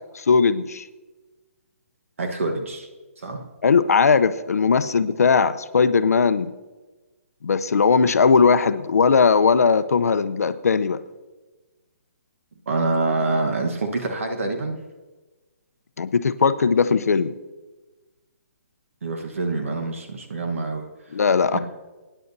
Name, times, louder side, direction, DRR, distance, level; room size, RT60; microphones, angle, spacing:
voice 1, 0.1-0.9 3.6-6.5 7.4-11.0 16.0-17.4 21.1-21.6, left 5 dB, 85° left, 13 dB, 0.7 m, -19 dB
voice 2, 2.2-2.9 3.2-3.4 12.7-14.8 19.0-21.2 21.5-21.6, right 3 dB, 60° right, 4 dB, 1.2 m, -26 dB
23.0 x 10.0 x 2.7 m, 1.2 s
hypercardioid pair, 175°, 8 cm